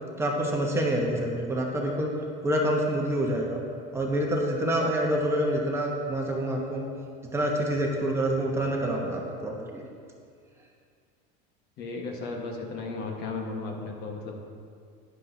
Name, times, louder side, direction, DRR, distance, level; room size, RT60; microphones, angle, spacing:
voice 1, 0.2-2.1 2.4-3.6 3.9-6.8 7.3-9.8, right 1 dB, 10° right, -1 dB, 1.1 m, -27 dB
voice 2, 11.8-14.4, left 3 dB, 50° left, 1 dB, 1.4 m, -35 dB
11.5 x 10.0 x 2.8 m, 2.2 s
supercardioid pair, 140°, 21 cm